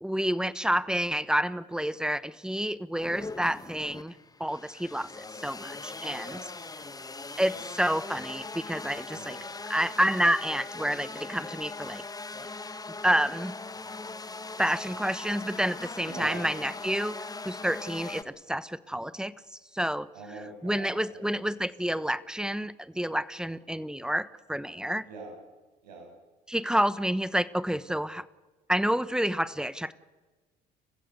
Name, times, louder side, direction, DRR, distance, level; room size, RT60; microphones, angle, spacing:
voice 1, 0.0-4.1 4.4-6.4 7.4-9.4 9.7-12.0 13.0-13.5 14.6-19.3 19.7-20.1 20.6-25.1 26.5-28.2 28.7-29.9, equal, 5° right, 17 dB, 1.0 m, -29 dB
sound 1, 3.0-18.2, left 3 dB, 20° left, 1.2 m, -40 dB
voice 2, 6.2-7.3 9.1-9.5 16.0-16.4 20.1-21.4 25.0-25.3 25.8-26.1, right 3 dB, 90° right, 2 dB, 6.3 m, -44 dB
29.5 x 15.5 x 6.7 m, 1.3 s
hypercardioid pair, 65°, 21 cm